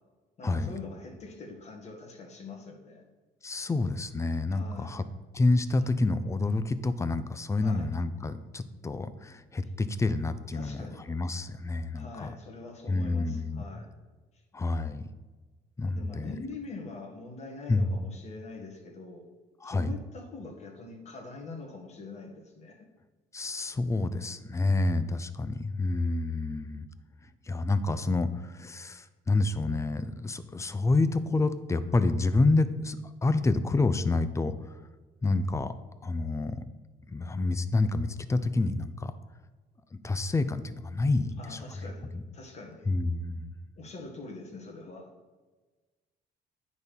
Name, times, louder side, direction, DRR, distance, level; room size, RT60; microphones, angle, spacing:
voice 1, 0.4-3.1 4.5-5.0 7.6-7.9 10.5-11.0 12.0-13.9 15.8-19.2 19.6-22.9 41.4-42.1 42.3-42.8 43.8-45.1, left 3 dB, 40° left, 1 dB, 1.8 m, -44 dB
voice 2, 3.4-5.0 5.3-12.3 12.9-13.8 14.5-15.1 15.8-16.4 17.7-17.9 19.6-19.9 23.3-26.9 27.2-34.8 35.2-35.7 36.0-36.6 37.1-39.1 39.9-41.8 42.1-42.2 42.9-43.5, left 3 dB, 15° left, 12 dB, 0.5 m, -28 dB
9.5 x 4.1 x 5.3 m, 1.3 s
cardioid pair, 110°, 17 cm